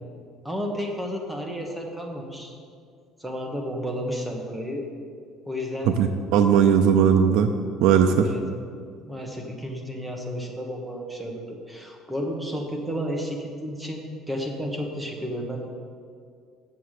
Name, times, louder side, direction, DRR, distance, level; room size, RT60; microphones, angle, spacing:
voice 1, 0.4-2.6 3.2-4.9 5.5-5.9 8.2-8.4 9.0-15.6, equal, 5° right, 1 dB, 1.1 m, -32 dB
voice 2, 5.9-7.5 7.8-8.3, right 8 dB, 80° right, 6 dB, 0.5 m, -18 dB
7.6 x 6.8 x 6.5 m, 2.2 s
cardioid pair, 170°, 0 cm